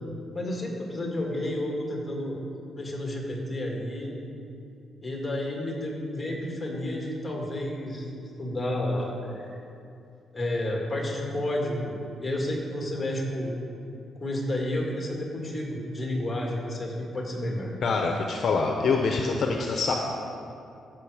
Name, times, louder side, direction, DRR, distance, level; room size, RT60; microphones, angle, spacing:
voice 1, 0.3-2.4 2.8-4.1 5.0-9.4 10.3-12.0 12.2-13.5 14.2-17.7, left 1 dB, 20° left, -1 dB, 2.2 m, -31 dB
voice 2, 17.8-19.9, left 4 dB, 55° left, 2 dB, 0.8 m, -25 dB
15.0 x 6.3 x 5.0 m, 2.6 s
cardioid pair, 115°, 0 cm